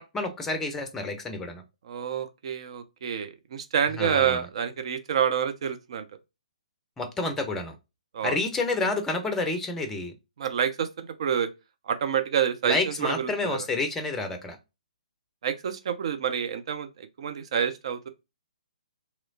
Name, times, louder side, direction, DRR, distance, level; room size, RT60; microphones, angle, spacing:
voice 1, 0.0-1.6 4.0-4.4 7.0-7.8 8.2-10.1 12.7-14.6, left 3 dB, 10° left, 0.5 m, -29 dB
voice 2, 1.8-6.1 8.1-8.4 10.4-11.5 11.8-13.7 15.4-18.1, right 8 dB, 45° right, 0.5 m, -28 dB
3.0 x 3.0 x 2.6 m
figure-of-eight pair, 130°, 4 cm